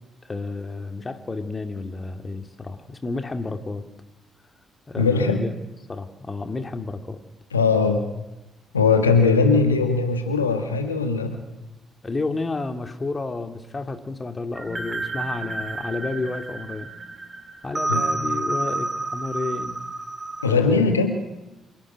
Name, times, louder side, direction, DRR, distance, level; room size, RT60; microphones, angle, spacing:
voice 1, 0.2-3.8 4.9-5.5 5.9-7.2 12.0-16.9 17.6-19.8 20.5-20.9, left 3 dB, 30° left, 7 dB, 2.4 m, -31 dB
voice 2, 5.0-5.5 7.5-8.1 8.7-11.4 17.9-18.0 20.4-21.2, left 4 dB, 90° left, 6 dB, 1.7 m, -20 dB
sound 1, 14.6-20.5, right 2 dB, 25° right, 2.8 m, -30 dB
26.0 x 11.5 x 10.0 m, 0.98 s
figure-of-eight pair, 40°, 0 cm